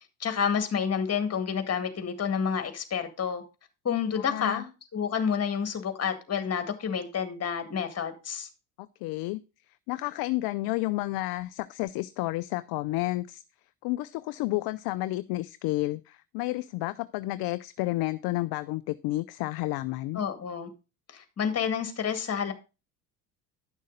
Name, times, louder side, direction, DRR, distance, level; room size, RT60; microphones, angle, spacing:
voice 1, 0.2-3.4 3.8-8.5 20.1-20.7 21.1-22.5, left 7 dB, 35° left, 1.9 m, -29 dB
voice 2, 4.2-4.6 9.0-9.4 9.9-13.4 13.8-20.2, left 19 dB, 55° left, 0.5 m, -31 dB
10.5 x 6.4 x 3.8 m
hypercardioid pair, 70°, 44 cm